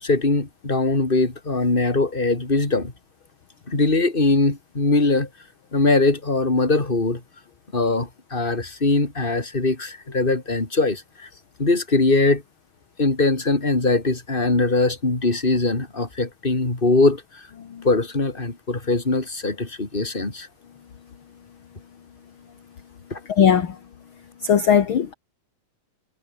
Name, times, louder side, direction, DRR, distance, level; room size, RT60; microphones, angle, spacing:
voice 1, 0.0-2.9 3.7-5.3 5.7-7.2 7.7-11.3 11.6-12.4 13.0-17.2 17.8-20.5 23.1-23.2, left 3 dB, 15° left, 3.6 m, -21 dB
voice 2, 23.3-23.8 24.4-25.1, left 8 dB, 45° left, 2.2 m, -18 dB
omnidirectional pair, 3.7 m